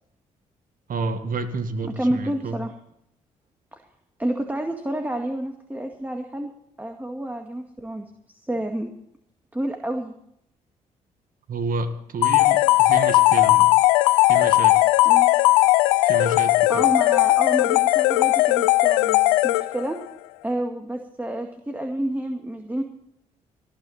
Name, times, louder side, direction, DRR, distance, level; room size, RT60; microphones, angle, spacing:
voice 1, 0.9-2.6 11.5-13.7 14.3-14.7 16.1-16.9, right 3 dB, 55° right, 9 dB, 2.0 m, -30 dB
voice 2, 1.9-2.7 3.7-3.8 4.2-6.5 6.8-8.9 9.5-10.1 15.1-15.3 16.7-20.0 20.4-22.8, right 1 dB, 10° right, 4 dB, 2.0 m, -29 dB
sound 1, 12.2-20.0, left 19 dB, 85° left, 0.5 m, -18 dB
19.0 x 12.0 x 4.4 m, 0.75 s
hypercardioid pair, 45°, 17 cm